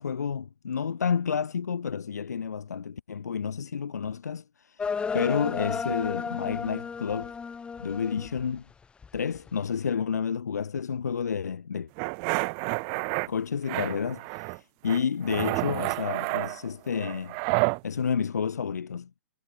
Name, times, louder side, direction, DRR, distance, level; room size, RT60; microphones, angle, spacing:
voice 1, 0.0-7.3 7.8-8.6 9.1-11.9 13.3-17.4 17.8-19.1, left 6 dB, 70° left, 2.9 m, -30 dB
sound 1, 4.8-8.6 9.0-9.5, left 5 dB, 10° left, 4.1 m, -33 dB
sound 2, 12.0-13.3 13.7-14.6 14.9-17.8, right 40 dB or more, 35° right, 1.2 m, -29 dB
figure-of-eight pair, 125°, 9 cm